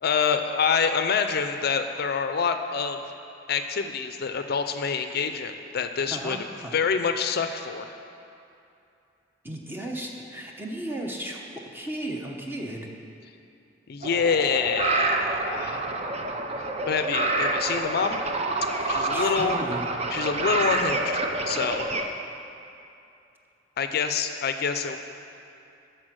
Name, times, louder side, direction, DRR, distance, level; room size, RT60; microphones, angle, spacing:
voice 1, 0.0-3.0 3.5-6.4 6.7-8.0 13.9-15.9 16.9-18.2 18.9-19.6 20.1-21.2 21.5-21.9 23.8-25.0, left 6 dB, 55° left, 8 dB, 0.4 m, -26 dB
voice 2, 6.1-6.7 9.4-12.9 18.7-19.8, right 1 dB, 10° right, 0 dB, 0.9 m, -35 dB
sound 1, 14.0-22.0, right 2 dB, 35° right, 0.6 m, -27 dB
12.5 x 4.5 x 6.2 m, 2.7 s
head